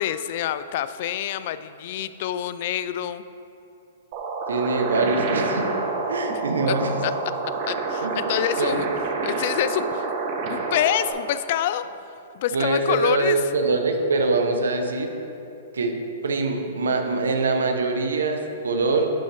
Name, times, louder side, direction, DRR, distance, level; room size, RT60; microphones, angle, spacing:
voice 1, 0.0-3.2 6.3-6.4 6.7-6.8 7.0-7.1 7.6-8.9 9.2-10.1 10.5-11.8 12.3-13.4, left 11 dB, 55° left, 13 dB, 0.3 m, -26 dB
sound 1, 4.1-11.1, right 4 dB, 45° right, 1.2 m, -28 dB
voice 2, 4.5-5.7 6.1-7.0 8.0-8.2 8.6-8.8 12.5-15.1 15.7-16.0 16.2-19.1, right 3 dB, 90° right, 4 dB, 0.9 m, -23 dB
11.0 x 5.4 x 3.4 m, 2.8 s
hypercardioid pair, 135°, 0 cm